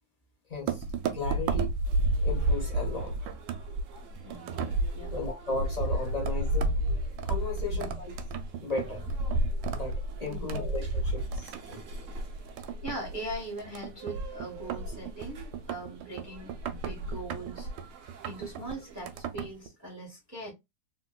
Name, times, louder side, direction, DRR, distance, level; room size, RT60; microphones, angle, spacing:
voice 1, 0.5-0.8 1.1-1.7 2.2-3.3 4.6-4.7 5.1-6.8 7.2-8.1 8.6-9.1 9.7-11.8, left 3 dB, 30° left, 0.9 m, -36 dB
sound 1, 0.7-19.7, right 2 dB, 85° right, 1.3 m, -31 dB
sound 2, 1.8-19.0, right 7 dB, 60° right, 0.8 m, -51 dB
voice 2, 4.2-5.1 7.6-8.1 10.2-10.7 12.8-17.7 18.2-20.5, right 1 dB, 15° right, 0.8 m, -41 dB
3.0 x 2.9 x 2.2 m
omnidirectional pair, 2.0 m